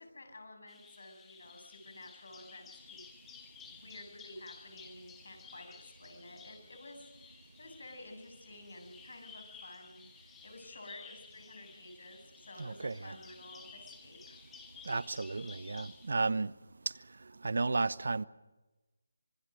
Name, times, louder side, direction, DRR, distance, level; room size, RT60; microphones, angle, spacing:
voice 1, 0.0-3.0 3.7-14.4, left 2 dB, 65° left, 8.0 m, -52 dB
Bird vocalization bird call bird song, 0.7-16.1, left 6 dB, 5° left, 1.1 m, -55 dB
voice 2, 12.6-13.2 14.9-16.5 17.4-18.2, right 3 dB, 60° right, 0.9 m, -33 dB
26.0 x 23.0 x 6.5 m
figure-of-eight pair, 175°, 0 cm